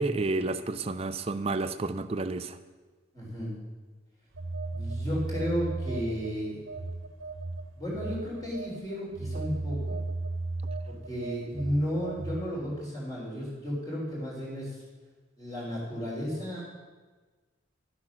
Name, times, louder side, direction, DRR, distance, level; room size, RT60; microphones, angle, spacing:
voice 1, 0.0-2.5, right 3 dB, 30° right, 11 dB, 0.5 m, -30 dB
voice 2, 3.1-3.5 4.7-6.6 7.7-10.0 10.9-14.7 15.4-16.7, equal, 20° left, -5 dB, 3.9 m, -33 dB
Telephone, 4.3-6.3 6.7-12.5, right 2 dB, 75° right, 1.0 m, -35 dB
12.0 x 8.3 x 6.1 m, 1.3 s
head